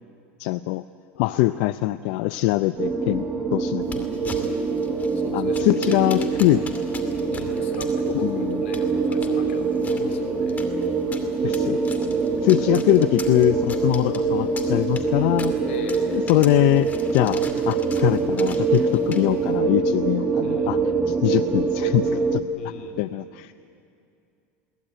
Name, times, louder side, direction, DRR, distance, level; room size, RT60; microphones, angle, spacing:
voice 1, 0.4-0.8 1.2-3.2 3.5-4.1 5.3-6.6 8.2-8.6 11.4-11.8 12.4-15.5 16.1-20.8 21.1-22.4 23.0-23.5, left 18 dB, 65° left, 13 dB, 0.5 m, -22 dB
voice 2, 1.1-1.5 5.1-6.4 7.3-10.6 12.5-13.1 15.6-16.2 20.4-20.9 22.5-23.1, left 7 dB, 90° left, 6 dB, 3.2 m, -37 dB
sound 1, 2.8-22.4, right 4 dB, 20° right, 1.7 m, -24 dB
sound 2, 3.8-19.6, left 4 dB, 25° left, 2.6 m, -42 dB
22.5 x 18.5 x 8.9 m, 2.6 s
supercardioid pair, 115°, 6 cm